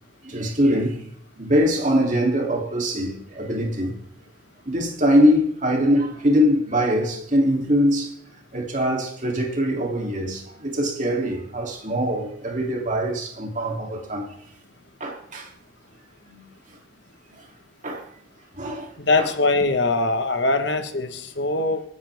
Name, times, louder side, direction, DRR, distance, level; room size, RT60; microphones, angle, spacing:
voice 1, 0.2-1.0 1.4-4.0 4.7-8.1 8.5-14.3 15.0-15.5 16.3-16.4 17.8-18.0 18.6-18.9 19.2-19.3, equal, 40° right, 3.0 m, -22 dB
voice 2, 19.0-21.8, left 3 dB, 60° left, 1.4 m, -22 dB
27.0 x 9.9 x 3.6 m
head